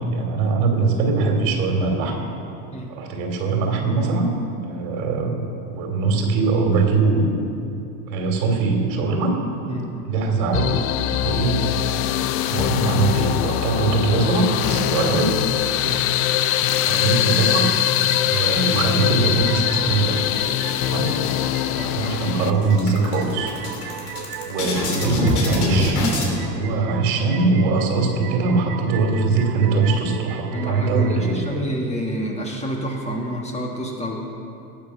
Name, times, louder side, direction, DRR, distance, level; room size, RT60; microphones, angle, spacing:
voice 1, 0.0-2.3 2.9-4.4 4.6-7.4 8.1-9.4 10.0-10.8 11.2-11.6 12.5-15.4 16.8-17.8 18.2-20.5 20.8-21.2 21.7-23.5 24.5-31.7, right 3 dB, 65° right, 2 dB, 2.9 m, -22 dB
voice 2, 9.7-10.1 15.8-16.0 21.7-21.9 30.5-34.2, equal, 15° left, 0 dB, 1.5 m, -28 dB
sound 1, 10.5-22.5, left 12 dB, 35° left, 0.4 m, -22 dB
sound 2, 17.2-31.6, right 10 dB, 50° right, 1.0 m, -38 dB
sound 3, 21.0-21.7 22.1-22.2 22.5-26.3, left 1 dB, 75° left, 3.2 m, -24 dB
18.0 x 7.2 x 5.9 m, 2.7 s
supercardioid pair, 120°, 46 cm